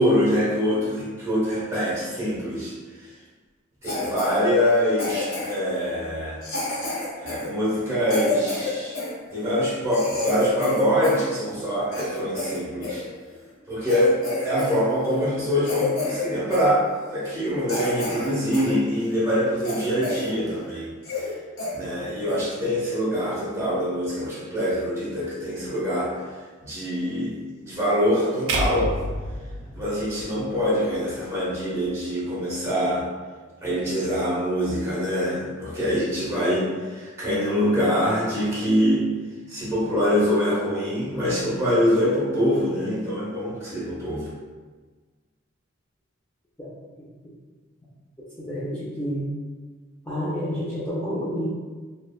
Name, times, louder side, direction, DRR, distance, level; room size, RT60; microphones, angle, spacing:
voice 1, 0.0-3.1 3.8-6.4 7.2-9.0 9.3-13.0 13.7-14.2 14.4-16.8 17.1-20.9 21.2-21.3 21.7-26.1 26.6-28.9 29.7-33.1 33.6-39.1 39.5-44.3, equal, 15° right, -8 dB, 0.9 m, -24 dB
Cough, 3.8-4.4 5.0-5.7 6.4-9.1 9.6-9.7 9.9-11.3 11.6-13.0 13.5-13.6 13.9-14.8 15.0-15.3 15.6-16.3 16.5-16.7 17.2-17.3 17.7-18.7 19.1-19.2 19.6-20.3 20.6-20.7 21.0-21.3 21.6-21.7 22.3-22.5, left 3 dB, 85° left, 1.0 m, -29 dB
sound 1, 28.5-30.7, right 1 dB, 65° right, 0.4 m, -29 dB
voice 2, 48.2-49.3 50.0-51.5, equal, 10° left, -10 dB, 0.4 m, -29 dB
3.2 x 2.1 x 2.3 m, 1.4 s
head